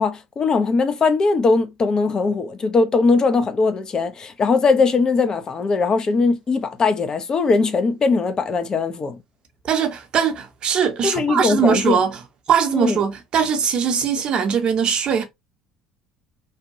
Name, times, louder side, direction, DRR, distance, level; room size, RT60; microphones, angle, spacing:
voice 1, 0.0-9.2 11.0-12.0 12.7-13.0, left 4 dB, 35° left, 0.5 m, -20 dB
voice 2, 9.6-12.1 12.5-15.2, right 7 dB, 45° right, 0.7 m, -20 dB
2.7 x 2.2 x 2.7 m
hypercardioid pair, 60°, 2 cm